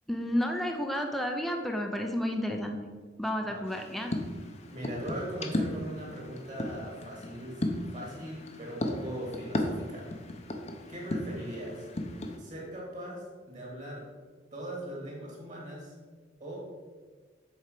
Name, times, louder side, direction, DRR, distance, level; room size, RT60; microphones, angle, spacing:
voice 1, 0.1-2.8 3.2-4.1, equal, ahead, 2 dB, 0.7 m, -31 dB
voice 2, 3.4-3.8 4.7-7.6 7.9-10.1 10.9-11.9 12.4-14.1 14.5-15.9 16.4-16.6, right 1 dB, 40° right, -2 dB, 2.6 m, -40 dB
sound 1, 3.7-12.4, left 1 dB, 35° left, 0.9 m, -36 dB
7.5 x 4.8 x 6.7 m, 1.4 s
head